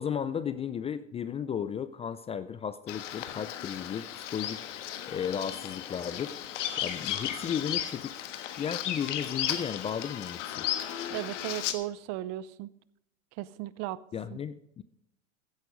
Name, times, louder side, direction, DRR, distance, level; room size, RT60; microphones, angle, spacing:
voice 1, 0.0-4.7 5.1-6.4 6.8-8.1 8.6-10.6 14.1-14.8, left 8 dB, 15° left, 14 dB, 0.4 m, -34 dB
Bird vocalization bird call bird song, 2.9-11.7, left 11 dB, 70° left, 1.4 m, -35 dB
voice 2, 11.1-12.7 13.4-14.0 14.3-14.4, right 15 dB, 45° right, 19 dB, 0.6 m, -36 dB
15.0 x 8.1 x 5.2 m, 0.77 s
hypercardioid pair, 100°, 38 cm